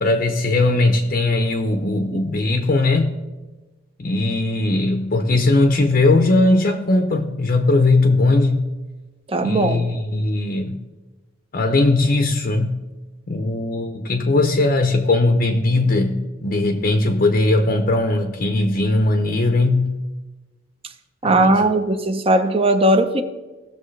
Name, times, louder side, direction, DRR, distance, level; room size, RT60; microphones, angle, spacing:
voice 1, 0.0-3.1 4.0-8.7 9.4-10.8 11.5-12.8 13.3-20.0 21.2-21.7, left 2 dB, 50° left, 0.7 m, -19 dB
voice 2, 9.3-9.9 21.2-23.2, right 1 dB, 30° right, 0.7 m, -18 dB
16.5 x 6.8 x 3.2 m
head